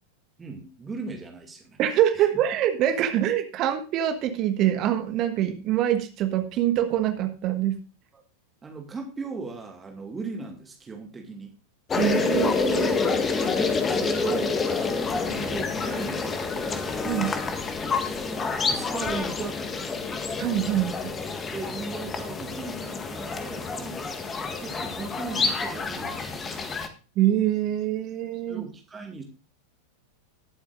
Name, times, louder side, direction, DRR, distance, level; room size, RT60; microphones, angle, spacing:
voice 1, 0.4-1.8 2.1-2.3 8.1-8.2 8.6-11.5 13.4-17.5 18.7-19.7 21.5-24.0 24.6-26.6 28.5-29.2, right 4 dB, 15° right, 3 dB, 2.2 m, -37 dB
voice 2, 1.8-7.8 12.0-13.0 17.0-17.3 20.4-21.1 27.2-28.6, right 11 dB, 35° right, 8 dB, 1.4 m, -24 dB
sound 1, 11.9-26.9, left 4 dB, 20° left, 1.7 m, -28 dB
20.0 x 8.7 x 2.5 m, 0.34 s
figure-of-eight pair, 90°, 0 cm